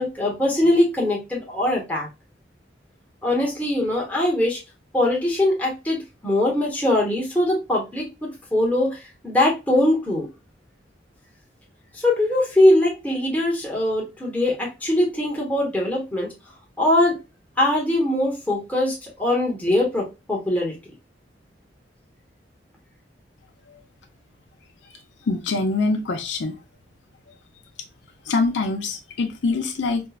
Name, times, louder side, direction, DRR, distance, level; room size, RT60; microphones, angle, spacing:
voice 1, 0.0-2.1 3.2-4.6 4.9-10.3 11.9-16.3 16.8-17.2 17.6-20.8, left 1 dB, 10° left, 0.9 m, -22 dB
voice 2, 25.3-26.5 28.3-30.0, left 3 dB, 80° left, 0.6 m, -24 dB
4.4 x 2.2 x 2.3 m
head